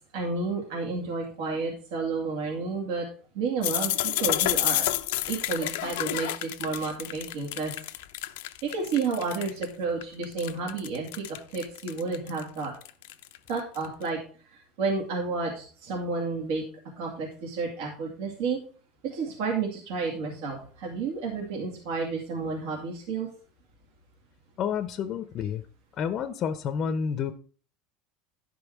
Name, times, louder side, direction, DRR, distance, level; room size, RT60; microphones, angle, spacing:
voice 1, 0.1-3.1 3.3-4.8 5.3-7.7 8.6-11.3 11.5-12.7 13.5-14.2 14.5-16.6 17.0-18.6 19.0-23.3, right 4 dB, 80° right, 2.4 m, -31 dB
sound 1, 3.6-9.6 10.0-13.9, left 15 dB, 85° left, 0.6 m, -30 dB
voice 2, 24.6-25.6 26.0-27.3, left 7 dB, 45° left, 0.6 m, -29 dB
11.0 x 5.4 x 4.6 m
supercardioid pair, 120°, 0 cm